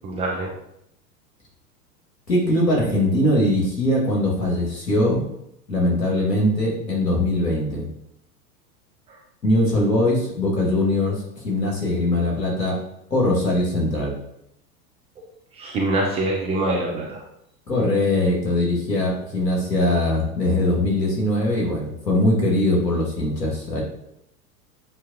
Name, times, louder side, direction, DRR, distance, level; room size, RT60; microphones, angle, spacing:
voice 1, 0.0-0.5 15.6-17.2, right 2 dB, 15° right, -2 dB, 0.3 m, -24 dB
voice 2, 2.3-5.2 5.7-7.9 9.4-12.8 13.1-14.1 17.7-23.8, left 1 dB, 85° left, -2 dB, 1.6 m, -21 dB
7.6 x 2.6 x 2.5 m, 0.77 s
figure-of-eight pair, 90°, 48 cm